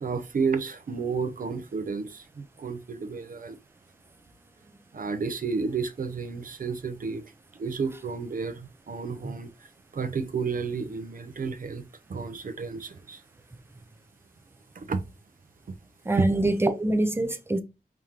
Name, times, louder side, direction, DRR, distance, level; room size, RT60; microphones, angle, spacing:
voice 1, 0.0-3.6 4.9-7.2 7.5-9.5 9.9-13.2 14.8-15.0 16.2-16.3, right 5 dB, 60° right, 0.7 m, -31 dB
voice 2, 16.0-17.6, right 2 dB, 15° right, 0.6 m, -25 dB
4.9 x 3.7 x 2.9 m
wide cardioid pair, 130°, 16 cm